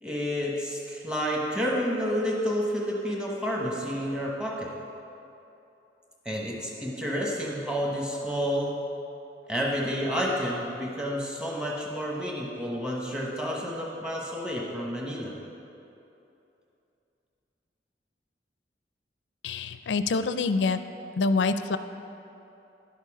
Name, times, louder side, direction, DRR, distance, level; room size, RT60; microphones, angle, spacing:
voice 1, 0.0-4.7 6.2-8.8 9.5-15.3, equal, 5° right, -2 dB, 1.1 m, -30 dB
voice 2, 19.4-20.8 21.2-21.8, left 4 dB, 85° left, 11 dB, 0.4 m, -26 dB
11.0 x 6.7 x 4.9 m, 2.8 s
head